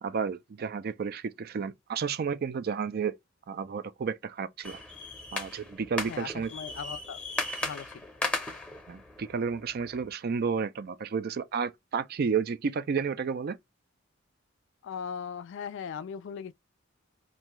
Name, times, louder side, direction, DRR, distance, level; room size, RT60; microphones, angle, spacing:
voice 1, 0.0-3.1 3.5-4.8 5.3-6.5 8.9-13.6, right 6 dB, 50° right, 0.4 m, -31 dB
sound 1, 4.6-10.1, left 2 dB, 5° left, 0.8 m, -37 dB
voice 2, 6.1-7.2 7.6-8.0 14.8-16.5, left 7 dB, 65° left, 0.3 m, -38 dB
2.6 x 2.3 x 2.9 m
head